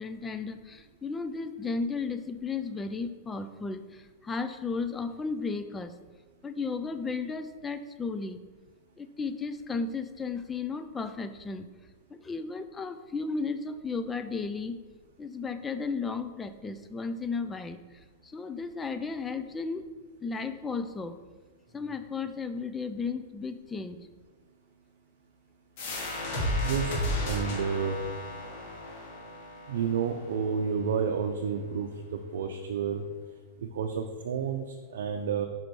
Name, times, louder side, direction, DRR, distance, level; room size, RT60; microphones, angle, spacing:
voice 1, 0.0-5.9 6.4-8.4 9.0-11.6 12.1-14.8 15.2-19.8 20.2-21.2 21.7-24.0, left 4 dB, 15° left, 10 dB, 0.4 m, -34 dB
sound 1, 25.8-31.2, left 1 dB, 55° left, 2.0 m, -34 dB
voice 2, 26.6-28.0 29.7-33.0 33.6-35.5, right 6 dB, 80° right, 4 dB, 0.6 m, -30 dB
5.5 x 5.1 x 4.6 m, 1.3 s
supercardioid pair, 145°, 0 cm